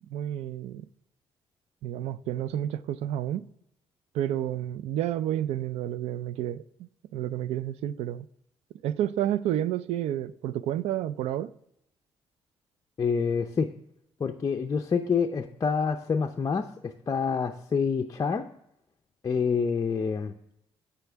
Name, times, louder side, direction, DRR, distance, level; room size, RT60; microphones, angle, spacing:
voice 1, 0.1-0.9 1.8-3.4 4.1-8.3 8.8-11.5, right 11 dB, 90° right, 0.4 m, -30 dB
voice 2, 13.0-13.7 14.2-18.5 19.2-20.3, left 5 dB, 35° left, 0.6 m, -27 dB
15.0 x 5.7 x 3.5 m
cardioid pair, 100°, 10 cm